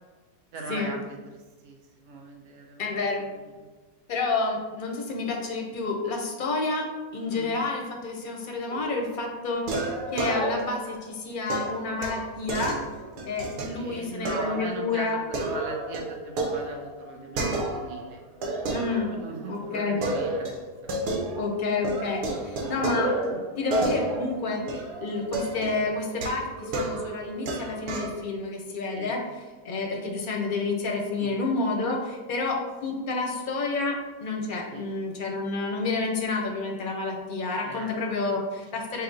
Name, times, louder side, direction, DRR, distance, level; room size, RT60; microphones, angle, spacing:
voice 1, 0.5-3.7 7.3-7.6 13.7-18.2 19.1-20.5 22.3-22.8 28.9-29.2 31.2-31.4 34.7-34.9 37.7-37.9 38.3-38.4 38.7-38.8, right 3 dB, 55° right, 0 dB, 0.9 m, -40 dB
voice 2, 2.8-3.2 4.1-12.8 13.2-15.2 18.7-19.1 19.5-20.0 21.3-29.2 29.6-32.5 32.8-39.0, left 3 dB, 50° left, 0 dB, 0.6 m, -29 dB
sound 1, 8.7-9.1 9.7-10.9 11.5-13.7 14.3-14.7 15.1-18.0 18.4-19.5 20.0-21.6 21.8-28.2, right 2 dB, 80° right, 1.3 m, -31 dB
5.8 x 2.0 x 3.9 m, 1.3 s
omnidirectional pair, 1.7 m